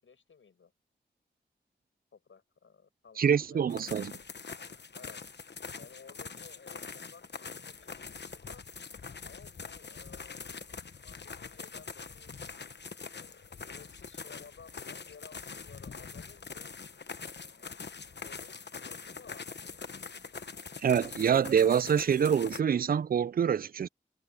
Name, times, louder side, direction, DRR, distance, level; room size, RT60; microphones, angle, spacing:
voice 1, 0.0-0.7 2.1-4.3 4.9-5.2 5.8-8.6 9.2-10.6 11.0-12.6 13.1-16.8 17.1-17.8 18.2-18.6 18.8-19.8, left 5 dB, 85° left, 7.9 m, -56 dB
voice 2, 3.2-4.1 20.8-23.9, right 7 dB, 50° right, 0.4 m, -26 dB
sound 1, 3.7-22.6, left 5 dB, 60° left, 1.1 m, -44 dB
cardioid pair, 40°, 20 cm